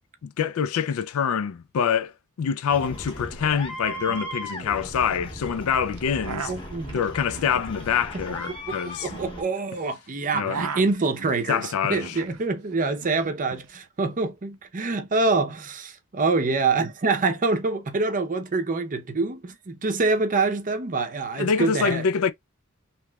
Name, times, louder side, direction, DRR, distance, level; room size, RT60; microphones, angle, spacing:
voice 1, 0.2-2.1 2.4-6.5 6.9-9.1 10.3-10.7 11.5-12.2 21.3-22.3, left 7 dB, 70° left, 0.4 m, -25 dB
sound 1, 2.7-9.4, equal, 25° left, 0.8 m, -37 dB
sound 2, 3.0-3.1 3.4-3.8 4.0-5.2 5.9-9.9 10.2-12.4 12.7-13.7, right 5 dB, 85° right, 0.6 m, -38 dB
voice 2, 6.5-6.9 9.0-22.0, right 3 dB, 40° right, 0.6 m, -25 dB
3.0 x 2.9 x 2.2 m
head